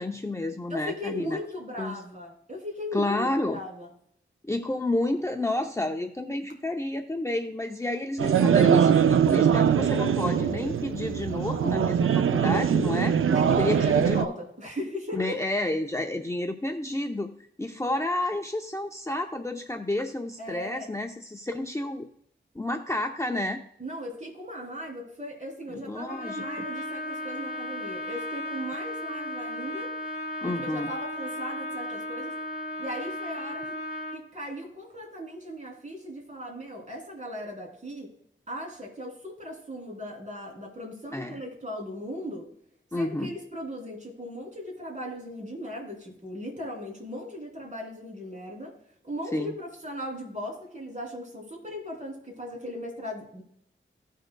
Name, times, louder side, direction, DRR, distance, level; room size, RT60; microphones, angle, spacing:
voice 1, 0.0-1.4 1.8-2.0 2.9-3.6 4.4-13.1 13.6-14.2 15.1-17.3 17.6-22.1 22.5-23.6 25.7-26.4 30.4-30.9 41.1-41.4 42.9-43.3 49.3-49.5, left 1 dB, 15° left, 3 dB, 0.6 m, -30 dB
voice 2, 0.7-3.9 13.3-15.4 20.4-20.9 23.8-29.9 30.4-32.4 32.8-33.8 34.1-38.1 38.5-42.5 42.9-48.7 49.0-53.4, equal, 35° right, -1 dB, 3.2 m, -37 dB
sound 1, 8.2-14.3, right 8 dB, 80° right, 0.4 m, -22 dB
Trumpet, 26.1-34.2, left 1 dB, 45° left, 2.4 m, -35 dB
17.0 x 6.5 x 2.3 m, 0.71 s
wide cardioid pair, 90°, 21 cm